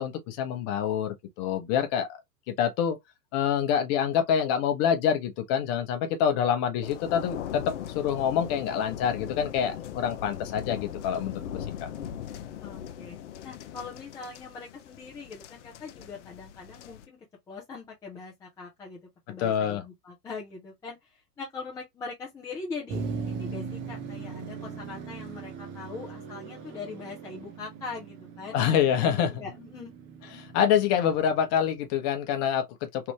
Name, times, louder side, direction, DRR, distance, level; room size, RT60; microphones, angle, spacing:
voice 1, 0.0-2.1 2.5-3.0 3.3-11.9 19.4-19.8 28.5-29.3 30.3-33.1, left 8 dB, 30° left, 1.0 m, -26 dB
sound 1, 6.8-17.1, left 9 dB, 50° left, 0.6 m, -40 dB
voice 2, 12.6-13.2 13.4-17.2 17.5-19.0 19.3-28.6 28.9-29.9, left 4 dB, 10° left, 0.5 m, -41 dB
Motor vehicle (road), 22.9-31.9, right 5 dB, 25° right, 0.8 m, -39 dB
3.5 x 2.4 x 2.9 m
figure-of-eight pair, 105°, 48 cm